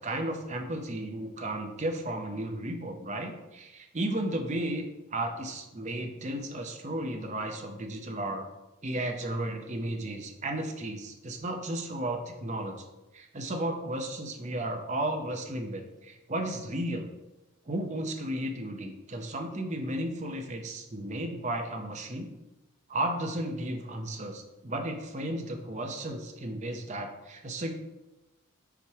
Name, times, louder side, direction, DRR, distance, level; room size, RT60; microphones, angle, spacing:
voice 1, 0.0-8.4 8.8-12.9 13.1-17.1 17.7-22.3 22.9-27.7, right 1 dB, 35° right, 3 dB, 0.7 m, -34 dB
7.1 x 3.1 x 4.6 m, 1.0 s
head